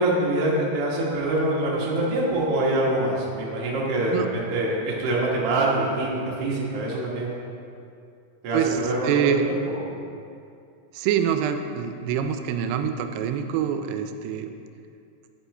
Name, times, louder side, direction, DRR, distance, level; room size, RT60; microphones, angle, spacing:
voice 1, 0.0-7.4 8.4-9.8, right 1 dB, 60° right, -4 dB, 1.6 m, -25 dB
voice 2, 8.5-9.4 10.9-14.5, right 8 dB, 85° right, 7 dB, 2.6 m, -25 dB
9.5 x 8.4 x 3.3 m, 2.5 s
omnidirectional pair, 4.7 m